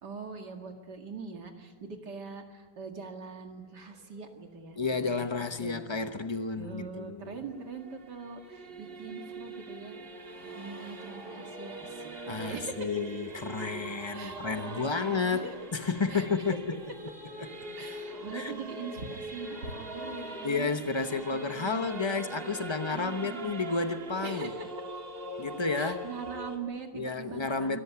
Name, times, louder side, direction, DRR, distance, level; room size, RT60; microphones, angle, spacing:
voice 1, 0.0-5.9 6.6-12.9 14.1-15.7 16.1-16.2 17.8-20.7 21.3-21.9 22.9-23.6 24.2-24.7 25.8-27.8, right 4 dB, 85° right, 2.7 m, -42 dB
sound 1, 3.6-9.1 10.2-12.5, left 1 dB, 70° left, 5.3 m, -58 dB
voice 2, 4.8-7.4 12.3-16.9 17.4-17.5 18.3-18.5 20.4-24.5 25.4-26.1 26.9-27.8, left 4 dB, 25° left, 0.6 m, -31 dB
Singing / Musical instrument, 7.2-26.6, right 2 dB, 35° right, 2.1 m, -42 dB
24.5 x 14.0 x 9.8 m
omnidirectional pair, 1.8 m